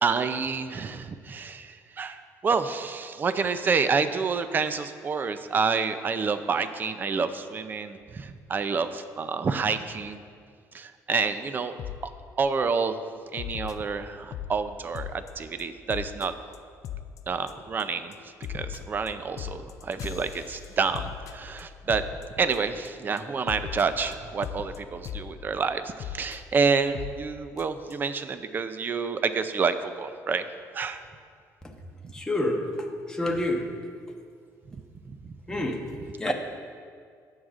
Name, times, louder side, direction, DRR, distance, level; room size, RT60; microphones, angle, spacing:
voice 1, 0.0-10.2 10.7-11.7 12.0-12.1 12.4-13.0 13.3-16.3 17.3-18.1 18.5-22.0 22.4-30.4 30.7-31.0 36.3-36.4, right 5 dB, 30° right, 10 dB, 0.4 m, -28 dB
sound 1, 11.8-12.0 12.4-12.7 13.4-14.6 14.9-15.3 15.6-15.7 15.9-16.3 16.5-16.6 16.8-17.2 17.5-17.8 18.1-22.9 23.2-23.3 23.5-25.3 26.0-26.4 26.9-27.2 27.6-27.7 27.9-28.0, left 10 dB, 60° left, 0.4 m, -38 dB
voice 2, 32.1-32.6 33.1-33.6 35.5-35.8 36.2-36.3, left 1 dB, 10° left, 1 dB, 1.0 m, -27 dB
16.5 x 6.4 x 2.5 m, 2.1 s
cardioid pair, 125°, 6 cm